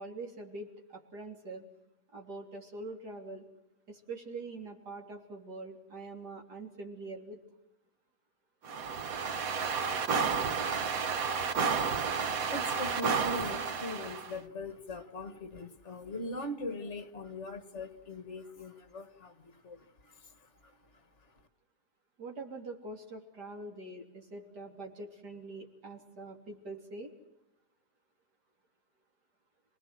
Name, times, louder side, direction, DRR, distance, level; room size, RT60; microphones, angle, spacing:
voice 1, 0.0-1.7 2.1-3.5 3.9-7.4 22.2-27.1, right 2 dB, 70° right, 2 dB, 3.9 m, -44 dB
sound 1, 8.6-14.3, right 5 dB, 55° right, 1.5 m, -31 dB
voice 2, 10.8-21.4, left 2 dB, 45° left, 10 dB, 1.9 m, -42 dB
28.5 x 19.0 x 7.7 m, 0.88 s
omnidirectional pair, 1.8 m